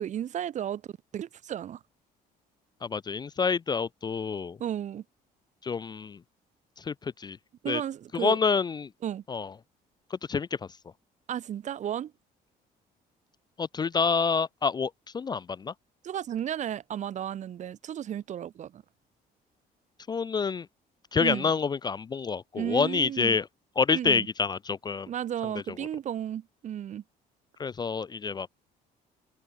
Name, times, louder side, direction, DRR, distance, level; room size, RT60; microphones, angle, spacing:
voice 1, 0.0-1.8 4.6-5.0 7.6-8.4 9.0-9.2 11.3-12.1 16.0-18.8 21.2-21.5 22.5-23.4 23.9-24.3 25.1-27.0, right 10 dB, 45° right, 0.7 m, -33 dB
voice 2, 2.8-4.6 5.6-6.2 6.8-7.4 7.7-7.8 8.1-8.9 9.3-9.5 10.1-10.5 13.6-15.7 20.1-20.7 21.1-23.5 23.8-25.1 25.4-25.5 27.6-28.5, left 5 dB, 25° left, 0.4 m, -28 dB
cardioid pair, 110°, 17 cm